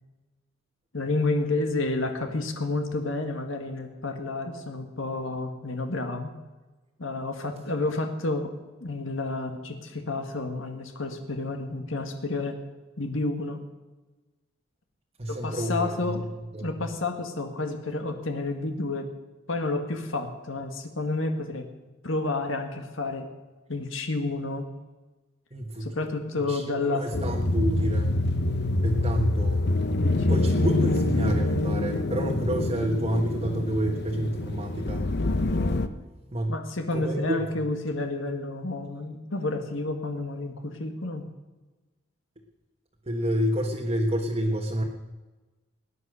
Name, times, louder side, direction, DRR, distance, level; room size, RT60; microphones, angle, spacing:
voice 1, 0.9-6.3 7.0-8.5 8.8-12.5 13.0-13.6 15.3-16.2 16.6-19.1 19.5-21.7 22.0-23.3 23.7-24.6 25.8-27.3 29.9-30.4 36.5-41.2, left 2 dB, 70° left, 5 dB, 1.7 m, -30 dB
voice 2, 15.2-16.1 16.5-16.8 25.5-25.9 26.4-28.2 28.8-29.7 30.3-35.1 36.3-36.6 36.9-37.4 43.0-44.8, equal, 30° right, 0 dB, 1.4 m, -29 dB
sound 1, 27.1-35.9, left 2 dB, 55° left, 0.8 m, -26 dB
19.0 x 9.8 x 6.4 m, 1.2 s
head